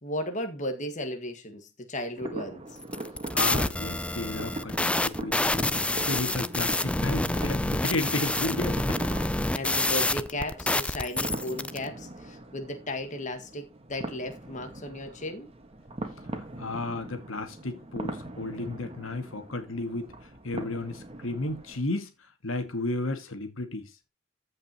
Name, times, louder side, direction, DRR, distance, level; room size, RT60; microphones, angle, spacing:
voice 1, 0.0-2.6 9.5-15.5, left 1 dB, 40° left, 1.6 m, -35 dB
sound 1, 2.2-21.8, right 2 dB, 30° right, 1.5 m, -41 dB
sound 2, 2.8-11.8, left 2 dB, 5° left, 0.4 m, -28 dB
voice 2, 3.3-9.5 16.6-20.1 20.4-22.1 22.4-23.9, left 2 dB, 85° left, 2.0 m, -33 dB
15.0 x 5.4 x 2.9 m
head